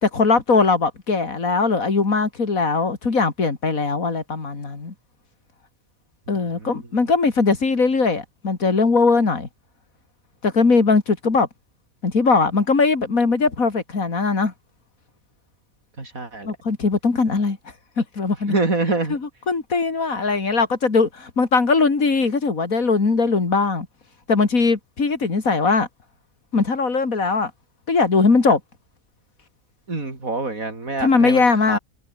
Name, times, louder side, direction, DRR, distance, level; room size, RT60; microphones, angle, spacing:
voice 1, 0.0-4.9 6.3-9.5 10.4-11.5 12.0-14.5 16.4-17.6 18.0-18.5 19.1-19.2 19.5-23.9 24.3-25.9 26.5-27.5 27.9-28.6 31.0-31.8, left 4 dB, 85° left, 3.3 m, -20 dB
voice 2, 16.0-16.5 18.5-19.2 29.9-31.8, right 3 dB, 80° right, 4.8 m, -25 dB
omnidirectional pair, 1.4 m